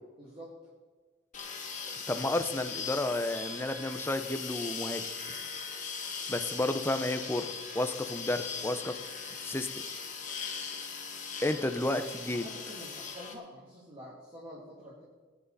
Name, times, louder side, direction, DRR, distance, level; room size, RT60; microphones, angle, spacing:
voice 1, 0.2-0.6 12.3-15.0, equal, 30° right, -7 dB, 3.0 m, -47 dB
sound 1, 1.3-13.3, left 5 dB, 40° left, 2.1 m, -39 dB
voice 2, 2.1-5.0 6.3-7.5 7.7-9.0 9.4-9.7 11.4-12.4, left 1 dB, 15° left, 8 dB, 0.9 m, -31 dB
20.5 x 10.5 x 4.2 m, 1.4 s
head